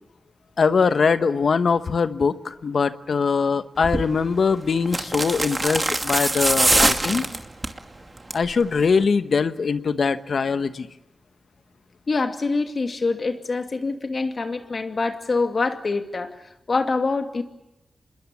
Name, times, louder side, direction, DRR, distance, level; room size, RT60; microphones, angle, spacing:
voice 1, 0.6-7.2 8.3-10.9, left 5 dB, 70° left, 11 dB, 1.1 m, -22 dB
sound 1, 3.8-4.1 4.9-7.8 8.2-8.5 8.8-8.9, right 2 dB, 35° right, 2.4 m, -22 dB
voice 2, 12.1-16.4 16.7-17.4, left 3 dB, 55° left, 6 dB, 2.3 m, -25 dB
26.5 x 21.5 x 8.4 m, 0.92 s
cardioid pair, 50°, 0 cm